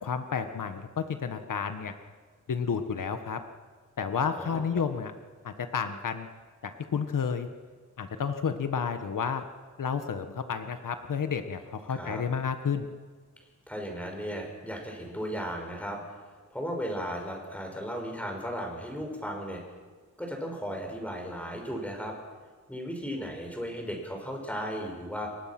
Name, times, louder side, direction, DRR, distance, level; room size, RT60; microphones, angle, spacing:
voice 1, 0.0-1.9 2.5-3.4 4.0-5.1 5.4-6.3 6.6-7.5 8.0-9.4 9.8-12.9, left 6 dB, 85° left, 7 dB, 1.6 m, -31 dB
voice 2, 4.4-4.8 12.0-12.2 13.7-16.0 16.5-19.6 20.2-22.2 22.7-25.3, equal, 5° left, 1 dB, 6.0 m, -35 dB
29.5 x 23.5 x 6.1 m, 1.5 s
wide cardioid pair, 125°, 31 cm